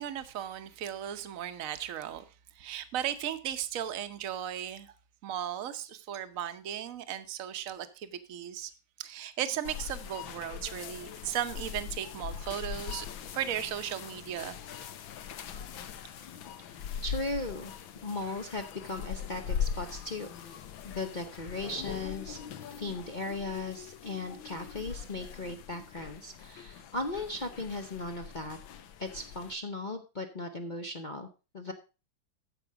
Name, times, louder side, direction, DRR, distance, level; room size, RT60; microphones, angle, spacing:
voice 1, 0.0-2.2 2.5-4.9 5.2-8.7 9.0-13.1 13.3-14.6, right 10 dB, 55° right, 1.1 m, -36 dB
sound 1, 9.6-29.5, left 8 dB, 80° left, 1.7 m, -41 dB
voice 2, 17.0-17.7 18.0-22.4 22.7-28.6 29.0-31.3 31.5-31.7, left 2 dB, 50° left, 0.5 m, -37 dB
14.0 x 5.5 x 4.6 m
omnidirectional pair, 2.1 m